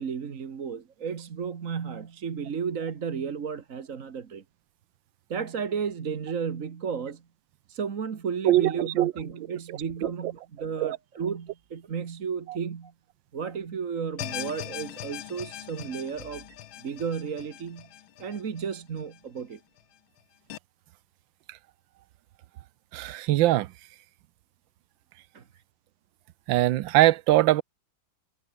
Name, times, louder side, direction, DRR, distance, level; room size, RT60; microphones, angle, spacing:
voice 1, 0.0-4.4 5.3-7.2 7.7-12.9 13.3-16.4 16.8-17.9 18.2-19.6 25.3-25.4, right 6 dB, 45° right, 1.6 m, -33 dB
voice 2, 8.4-9.1 10.8-11.0 22.9-23.7 26.5-27.6, right 15 dB, 75° right, 1.4 m, -21 dB
sound 1, 14.2-19.4 19.8-19.9 20.5-20.6, left 12 dB, 90° left, 1.7 m, -40 dB
omnidirectional pair, 2.2 m